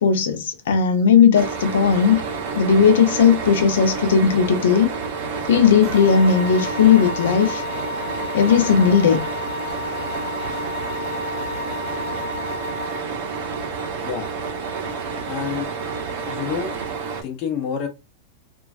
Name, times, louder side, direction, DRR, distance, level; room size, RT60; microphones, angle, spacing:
voice 1, 0.0-2.2 2.6-4.9 5.5-7.6 8.3-9.3, left 7 dB, 80° left, 0.5 m, -16 dB
sound 1, 1.3-17.2, right 5 dB, 50° right, 0.7 m, -29 dB
sound 2, 5.8-13.0, left 5 dB, 15° right, 1.0 m, -32 dB
voice 2, 15.3-15.8 16.2-16.7 17.2-17.9, left 7 dB, 35° left, 0.7 m, -28 dB
3.1 x 2.3 x 2.4 m
supercardioid pair, 175°, 0 cm